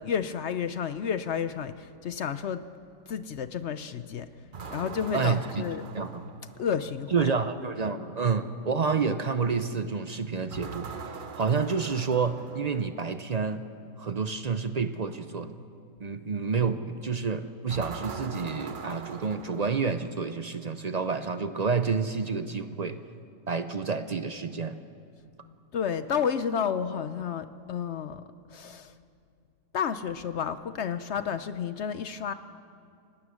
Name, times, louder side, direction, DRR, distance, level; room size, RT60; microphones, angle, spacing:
voice 1, 0.0-2.6 3.1-4.3 4.7-5.9 6.6-7.2 25.7-28.2 28.5-29.0 29.7-32.3, left 7 dB, 60° left, 12 dB, 0.8 m, -31 dB
sound 1, 4.5-6.9 10.5-13.0 17.7-20.3, right 5 dB, 40° right, 0.9 m, -42 dB
voice 2, 5.1-5.6 5.9-6.2 7.1-10.9 11.3-13.6 14.0-15.5 16.0-23.0 23.5-24.8, right 5 dB, 60° right, 10 dB, 0.4 m, -29 dB
28.5 x 18.5 x 6.3 m, 2.4 s
omnidirectional pair, 1.7 m